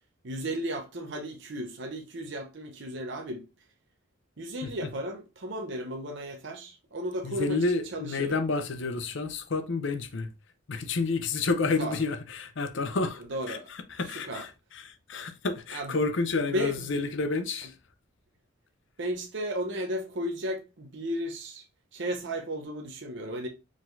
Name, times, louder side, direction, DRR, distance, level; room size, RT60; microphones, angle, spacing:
voice 1, 0.2-3.5 4.4-7.6 7.9-8.4 11.8-12.0 13.3-13.7 14.2-14.4 15.1-15.2 15.7-15.9 16.5-16.8 19.0-21.6 21.9-23.5, equal, 60° right, 0.8 m, -34 dB
voice 2, 7.2-10.3 10.7-17.7, left 3 dB, 60° left, 0.7 m, -30 dB
4.9 x 3.9 x 2.6 m
head